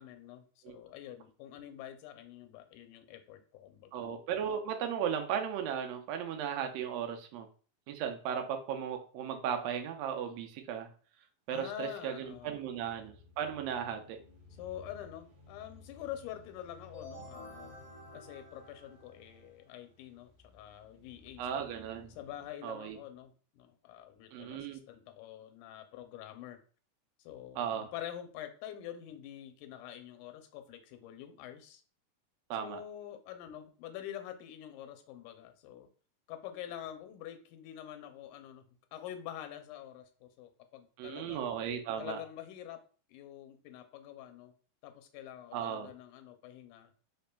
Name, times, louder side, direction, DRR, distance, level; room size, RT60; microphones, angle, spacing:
voice 1, 0.0-4.1 11.5-12.8 14.6-17.8 18.1-21.7 22.1-26.6 27.2-31.8 32.6-35.9 36.3-38.6 38.9-41.5 42.0-42.8 43.1-44.5 44.8-46.9, left 11 dB, 85° left, 7 dB, 2.1 m, -46 dB
voice 2, 3.9-7.5 7.9-10.9 11.5-14.2 21.4-22.1 22.6-23.0 24.3-24.8 27.6-27.9 32.5-32.8 41.0-42.2 45.5-45.9, right 8 dB, 80° right, 5 dB, 1.5 m, -36 dB
sound 1, 12.2-22.5, left 2 dB, 50° right, 1.2 m, -58 dB
sound 2, 16.9-19.6, left 1 dB, 35° left, 1.3 m, -51 dB
4.2 x 3.4 x 2.2 m, 0.40 s
omnidirectional pair, 3.5 m